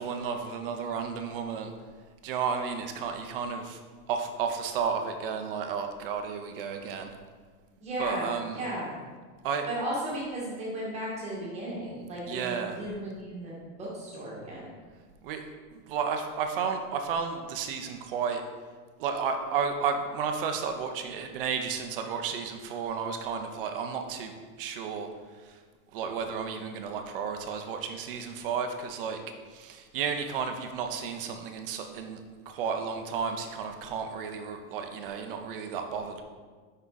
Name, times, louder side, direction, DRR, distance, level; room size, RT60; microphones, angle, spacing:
voice 1, 0.0-1.7 2.2-3.8 4.1-7.1 8.0-8.6 9.4-9.7 12.3-12.8 15.2-15.4 15.7-18.4 19.0-25.1 25.5-25.6 25.9-29.2 29.5-32.2 32.5-36.2, right 6 dB, 40° right, 5 dB, 0.5 m, -32 dB
voice 2, 7.8-9.0 9.7-14.7, right 1 dB, 15° right, -5 dB, 1.4 m, -35 dB
5.8 x 5.5 x 3.8 m, 1.5 s
supercardioid pair, 170°, 46 cm